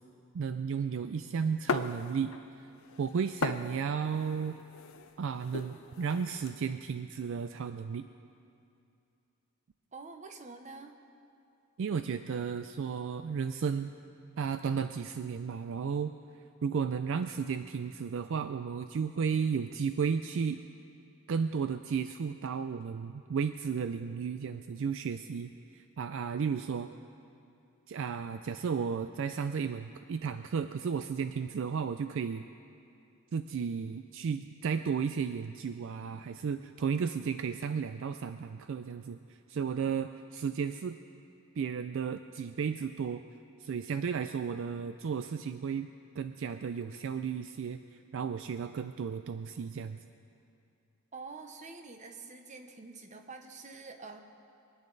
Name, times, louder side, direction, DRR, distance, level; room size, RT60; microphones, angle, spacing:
voice 1, 0.3-2.7 3.0-4.6 5.2-8.1 11.8-13.9 14.4-16.1 16.6-20.6 21.3-26.9 27.9-32.4 33.3-39.2 39.5-41.0 41.6-43.2 43.6-45.9 46.2-50.0, right 6 dB, 60° right, 9 dB, 0.4 m, -33 dB
sound 1, 1.7-2.5 2.8-6.5, left 4 dB, 65° left, 0.5 m, -38 dB
voice 2, 9.9-10.9 51.1-54.2, right 4 dB, 35° right, 6 dB, 0.8 m, -46 dB
23.5 x 9.4 x 3.9 m, 2.6 s
head